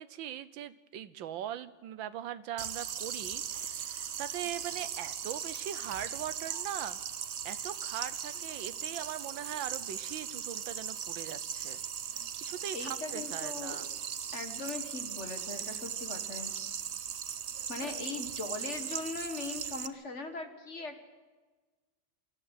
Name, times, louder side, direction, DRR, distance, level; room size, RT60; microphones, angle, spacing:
voice 1, 0.0-7.0 7.4-11.8 12.1-13.9 17.8-17.9, right 10 dB, 70° right, 14 dB, 1.5 m, -41 dB
sound 1, 2.6-19.9, right 8 dB, 90° right, 0.6 m, -38 dB
voice 2, 12.7-13.9 14.3-16.5 17.7-21.0, left 3 dB, 35° left, 7 dB, 1.8 m, -40 dB
24.0 x 14.0 x 9.2 m, 1.3 s
omnidirectional pair, 2.3 m